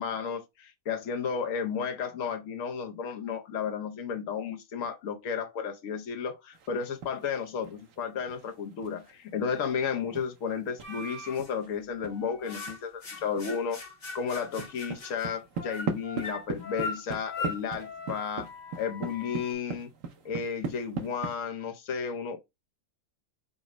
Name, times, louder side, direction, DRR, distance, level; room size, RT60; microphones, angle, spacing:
voice 1, 0.0-13.8 14.1-18.5 18.8-19.9 20.2-22.4, left 6 dB, 70° left, 1.1 m, -33 dB
sound 1, 6.5-7.3 7.6-12.2 12.7-12.8 13.0-13.6 13.9-21.3, right 5 dB, 70° right, 1.1 m, -39 dB
sound 2, 10.8-11.5 12.0-19.5, left 4 dB, 35° left, 0.9 m, -40 dB
5.1 x 2.0 x 4.8 m
omnidirectional pair, 1.5 m